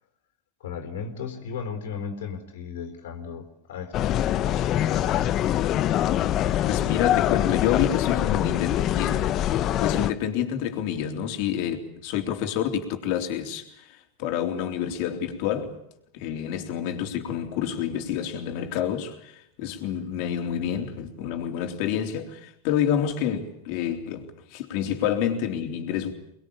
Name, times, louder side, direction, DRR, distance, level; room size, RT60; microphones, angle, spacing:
voice 1, 0.6-4.2 4.4-5.2, left 6 dB, 80° left, 4.0 m, -36 dB
sound 1, 3.9-10.1, left 12 dB, 40° left, 1.0 m, -24 dB
voice 2, 6.7-9.5 9.8-15.8 16.1-26.1, left 9 dB, 60° left, 3.6 m, -28 dB
24.5 x 21.0 x 8.8 m
hypercardioid pair, 110°, 0 cm